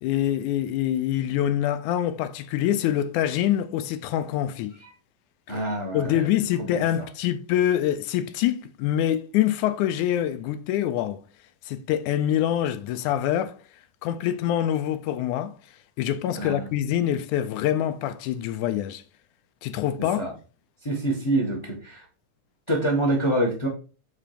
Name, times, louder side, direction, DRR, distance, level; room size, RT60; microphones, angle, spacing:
voice 1, 0.0-4.8 5.5-5.6 5.9-11.2 11.7-13.6 14.0-15.5 16.0-19.0 19.6-20.3, left 11 dB, 80° left, 1.9 m, -25 dB
voice 2, 5.5-6.2 6.6-6.8 16.4-16.7 20.2-20.3 20.8-22.0 22.7-23.7, right 1 dB, 20° left, 0.7 m, -26 dB
7.4 x 3.8 x 5.0 m
omnidirectional pair, 3.7 m